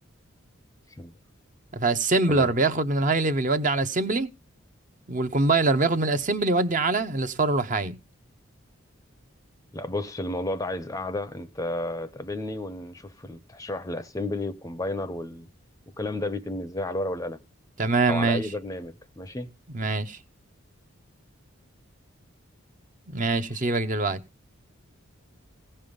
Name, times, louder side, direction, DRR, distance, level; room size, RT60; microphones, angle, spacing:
voice 1, 1.7-4.3 5.1-8.0 17.8-18.4 19.7-20.2 23.1-24.2, right 3 dB, 40° right, 0.7 m, -24 dB
voice 2, 9.7-15.5 16.0-17.4 18.1-19.5 23.5-23.6, left 1 dB, 15° left, 0.6 m, -32 dB
16.5 x 5.6 x 5.1 m
head